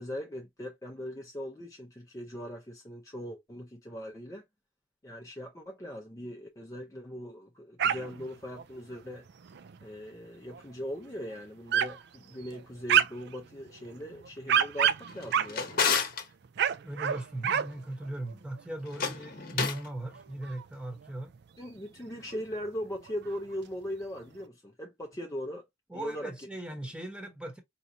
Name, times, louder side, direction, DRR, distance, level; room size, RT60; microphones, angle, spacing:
voice 1, 0.0-4.4 5.0-9.3 9.8-15.7 21.6-25.6 25.9-26.3, equal, 15° left, 0.5 m, -40 dB
Dogs barking on a prairie, 7.8-8.3 8.6-8.7 9.3-9.8 10.5-10.6 11.1-11.2 11.7-12.0 12.4-13.4 14.0-16.0 16.5-17.7 18.0-18.3 18.6-18.7 19.0-19.1 19.7-20.6 21.0-21.1 21.3-21.4 22.3-22.4 22.7-22.8 23.0-23.6, right 8 dB, 55° right, 0.4 m, -28 dB
Drawer open or close, 15.1-16.3 18.8-19.9, left 6 dB, 45° left, 0.9 m, -30 dB
voice 2, 16.8-21.3 25.9-27.6, right 1 dB, 5° right, 1.0 m, -38 dB
4.8 x 2.9 x 2.6 m
head